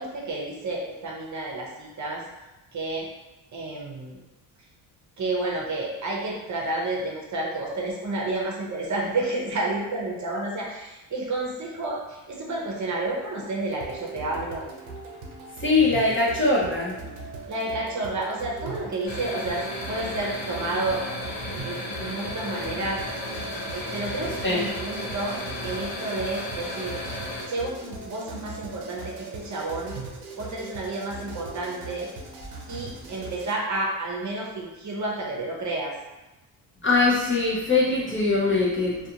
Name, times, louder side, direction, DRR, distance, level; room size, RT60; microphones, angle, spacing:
voice 1, 0.0-2.2 2.7-3.1 3.5-4.2 5.2-14.7 17.5-19.6 19.9-23.0 23.7-27.0 27.5-30.0 30.3-32.1 32.7-35.9, right 2 dB, 35° right, -3 dB, 0.7 m, -30 dB
sound 1, 13.7-33.5, right 3 dB, 85° right, 0.7 m, -40 dB
voice 2, 15.6-17.0 24.4-24.7 36.8-39.0, left 3 dB, 25° left, -5 dB, 0.6 m, -22 dB
sound 2, 19.1-27.4, left 1 dB, 55° left, 1.0 m, -34 dB
2.4 x 2.4 x 2.7 m, 1.0 s
cardioid pair, 90°, 49 cm